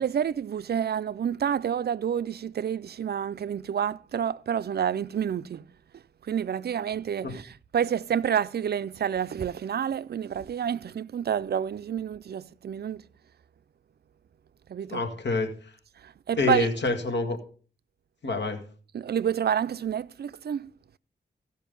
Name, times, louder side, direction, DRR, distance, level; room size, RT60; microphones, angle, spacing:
voice 1, 0.0-5.6 6.3-13.0 14.7-15.1 16.0-16.7 18.9-20.7, right 8 dB, 60° right, 0.4 m, -29 dB
voice 2, 14.9-15.5 16.4-17.4 18.2-18.6, left 3 dB, 75° left, 1.9 m, -27 dB
15.5 x 5.5 x 5.2 m
wide cardioid pair, 80°, 18 cm